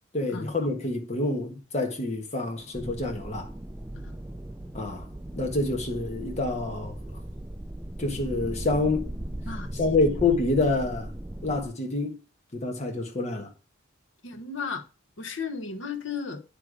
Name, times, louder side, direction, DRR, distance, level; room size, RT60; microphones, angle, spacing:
voice 1, 0.1-3.5 4.7-5.1 5.3-6.9 8.0-9.1 9.7-11.1 11.4-12.2 12.5-13.5, left 2 dB, 30° left, 1.4 m, -27 dB
sound 1, 2.7-11.7, right 1 dB, 10° right, 0.3 m, -38 dB
voice 2, 9.4-10.1 14.2-14.8 15.2-16.4, left 5 dB, 65° left, 1.2 m, -35 dB
9.8 x 3.4 x 4.9 m
head